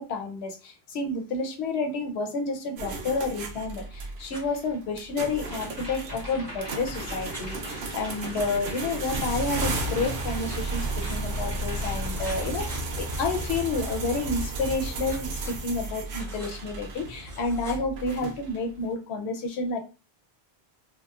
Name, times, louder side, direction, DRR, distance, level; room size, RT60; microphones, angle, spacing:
voice 1, 0.0-19.8, left 3 dB, 85° left, 0.8 m, -30 dB
sound 1, 2.8-18.7, right 2 dB, 80° right, 0.8 m, -33 dB
Writing, 4.3-4.4 5.6-6.5 7.3-7.5 8.3-8.5 10.1-11.4 11.7-14.2 15.1-15.6 16.2-16.5 17.2-17.8, right 1 dB, 5° left, 0.5 m, -46 dB
sound 2, 5.4-12.7, equal, 25° right, 0.9 m, -41 dB
2.9 x 2.0 x 2.3 m
omnidirectional pair, 1.0 m